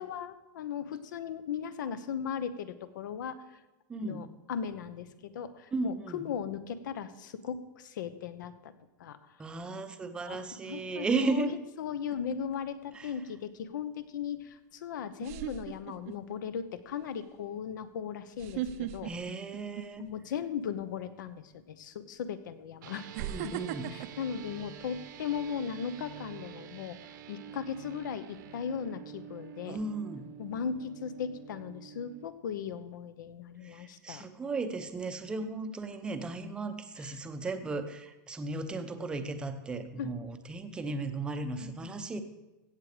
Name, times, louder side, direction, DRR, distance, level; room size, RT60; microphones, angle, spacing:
voice 1, 0.0-3.4 4.0-8.7 9.0-9.4 10.2-19.1 20.0-23.1 23.4-23.6 23.9-27.0 27.3-29.8 30.4-34.2 40.0-40.1 41.6-41.9, left 7 dB, 80° left, 13 dB, 1.0 m, -37 dB
voice 2, 3.9-4.3 5.7-6.3 9.4-11.5 12.9-13.1 19.0-20.1 23.2-23.9 29.7-30.3 33.6-42.2, right 3 dB, 10° right, 8 dB, 0.6 m, -35 dB
sound 1, 12.1-12.6 14.5-14.6 15.2-16.3 16.8-17.0 18.3-20.2 20.6-20.8 21.8-21.9 23.1-25.4 25.8-26.1, right 11 dB, 50° right, 0.6 m, -39 dB
sound 2, 22.8-32.3, right 9 dB, 75° right, 1.1 m, -47 dB
16.0 x 7.6 x 5.0 m, 1.1 s
supercardioid pair, 170°, 10 cm